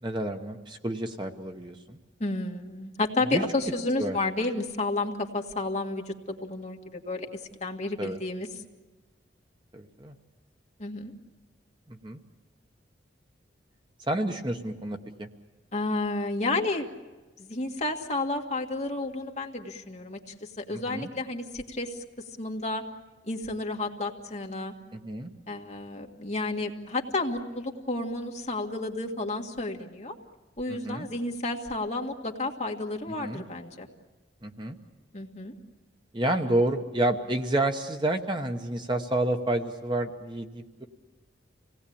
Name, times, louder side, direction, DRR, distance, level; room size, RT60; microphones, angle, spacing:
voice 1, 0.0-2.0 3.3-3.4 4.0-4.2 8.0-8.2 9.7-10.1 11.9-12.2 14.1-15.3 20.7-21.1 24.9-25.3 30.7-31.1 33.2-33.4 34.4-34.8 36.1-40.9, right 1 dB, 25° right, 5 dB, 1.1 m, -29 dB
voice 2, 2.2-8.5 10.8-11.1 15.7-16.9 17.4-22.0 22.4-22.8 23.2-24.7 25.5-30.2 30.6-33.9 35.1-35.5, left 2 dB, 35° left, 2 dB, 1.9 m, -31 dB
26.5 x 18.5 x 8.6 m, 1.2 s
head